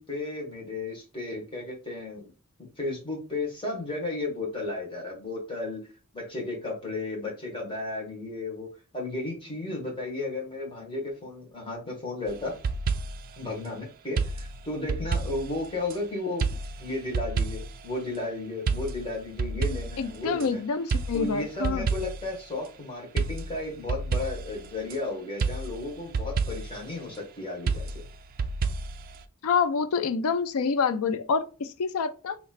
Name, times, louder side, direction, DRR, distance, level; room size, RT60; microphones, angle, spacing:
voice 1, 0.0-2.3 2.8-5.8 6.1-8.7 8.9-12.6 13.4-16.5 16.8-20.6 21.1-28.0, left 2 dB, 25° left, 1.5 m, -34 dB
sound 1, 12.3-13.4 14.2-16.0 16.4-17.9 18.7-20.5 20.9-22.4 23.2-25.0 25.4-26.8 27.7-29.2, right 4 dB, 40° right, 0.3 m, -30 dB
voice 2, 20.0-21.9 29.4-32.4, left 5 dB, 75° left, 0.4 m, -27 dB
4.1 x 2.9 x 2.5 m
head